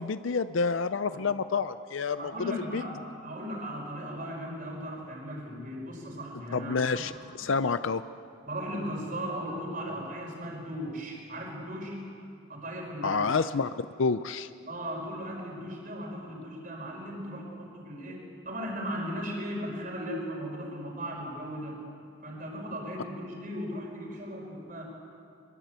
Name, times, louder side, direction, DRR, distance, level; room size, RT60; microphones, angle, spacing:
voice 1, 0.0-2.8 6.5-7.1 7.4-8.0 13.0-13.7 14.0-14.5, left 4 dB, 75° left, 12 dB, 0.6 m, -28 dB
voice 2, 2.2-7.2 8.4-12.0 12.5-13.3 14.7-21.8 22.2-24.8, equal, 40° right, 0 dB, 5.4 m, -37 dB
22.5 x 22.0 x 8.2 m, 2.4 s
head